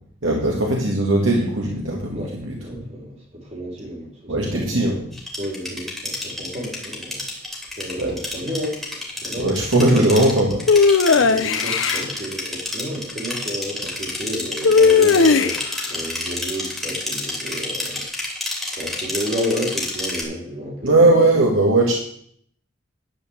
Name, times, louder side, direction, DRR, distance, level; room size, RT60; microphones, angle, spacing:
voice 1, 0.2-2.6 4.3-5.0 8.0-8.2 9.4-10.6 20.8-21.9, right 2 dB, 85° right, -1 dB, 1.8 m, -18 dB
voice 2, 2.6-4.8 5.4-7.3 7.8-9.5 11.1-18.0 18.7-21.0, equal, 35° right, -1 dB, 3.5 m, -31 dB
sound 1, 5.1-20.2, left 2 dB, ahead, 3.1 m, -29 dB
sound 2, 10.7-12.1 14.6-15.8, left 5 dB, 80° left, 0.6 m, -16 dB
11.0 x 5.3 x 7.8 m, 0.64 s
head